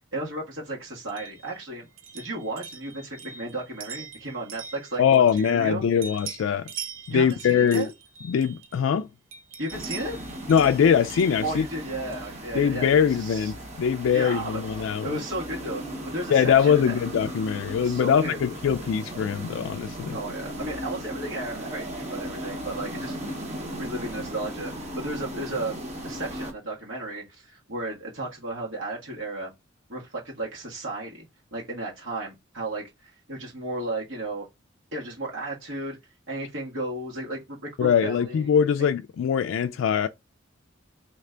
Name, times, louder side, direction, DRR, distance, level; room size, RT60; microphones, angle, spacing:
voice 1, 0.1-1.9 2.1-5.8 7.1-7.9 9.6-10.2 11.4-13.5 14.1-14.6 15.0-16.9 17.8-18.4 20.1-23.1 23.8-29.5 29.9-31.3 31.5-34.5 34.9-36.0 36.3-38.9, right 2 dB, 75° right, 1.4 m, -34 dB
sound 1, 1.1-5.7 6.0-8.9 9.3-12.4, right 7 dB, 90° right, 0.5 m, -43 dB
voice 2, 5.0-6.7 7.1-7.9 8.2-9.1 10.5-11.7 12.5-15.2 16.3-20.2 37.8-40.1, left 7 dB, 85° left, 0.3 m, -22 dB
sound 2, 9.7-26.5, right 1 dB, 35° right, 0.9 m, -37 dB
3.3 x 3.1 x 3.7 m
head